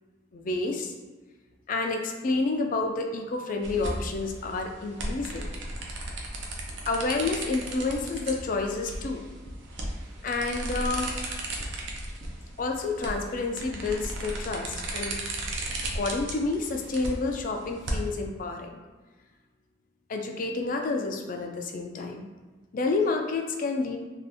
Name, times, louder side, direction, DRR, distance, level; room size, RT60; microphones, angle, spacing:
voice 1, 0.3-0.9 1.7-5.5 6.9-9.3 10.2-11.2 12.6-15.2 15.9-18.7 20.1-22.3 22.7-24.0, left 3 dB, 45° left, 3 dB, 0.3 m, -29 dB
sound 1, 3.6-18.1, right 1 dB, 65° right, 0.5 m, -35 dB
2.7 x 2.4 x 3.4 m, 1.3 s
head